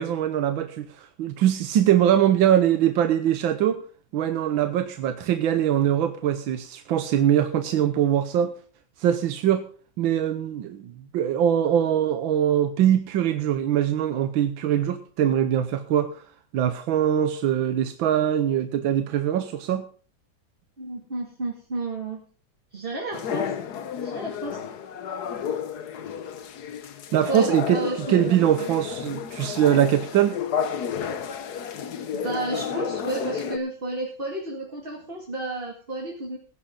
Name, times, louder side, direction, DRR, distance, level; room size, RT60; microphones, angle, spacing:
voice 1, 0.0-3.8 4.1-8.5 9.0-9.6 10.0-16.2 16.5-19.8 27.1-27.8 28.1-30.4, right 10 dB, 85° right, 9 dB, 1.7 m, -22 dB
voice 2, 20.8-22.2 22.7-23.6 24.0-24.6 27.3-28.7 31.7-31.9 32.1-36.4, right 2 dB, 30° right, -1 dB, 2.4 m, -32 dB
sound 1, 23.1-33.6, left 7 dB, 60° left, 1.4 m, -31 dB
17.0 x 10.5 x 3.8 m, 0.41 s
omnidirectional pair, 2.1 m